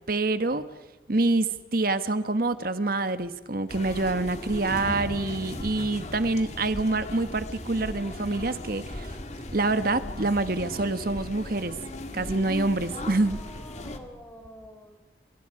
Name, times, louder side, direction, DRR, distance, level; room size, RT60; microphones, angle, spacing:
voice 1, 0.1-0.6 1.1-9.1 9.5-11.7 12.1-13.4, right 2 dB, 50° right, 11 dB, 1.3 m, -26 dB
sound 1, 3.7-14.0, left 1 dB, 40° left, 2.0 m, -38 dB
sound 2, 4.7-7.9, equal, 10° right, 1.8 m, -41 dB
voice 2, 12.9-15.0, equal, 10° left, 2 dB, 5.2 m, -47 dB
29.0 x 27.0 x 4.9 m, 1.2 s
head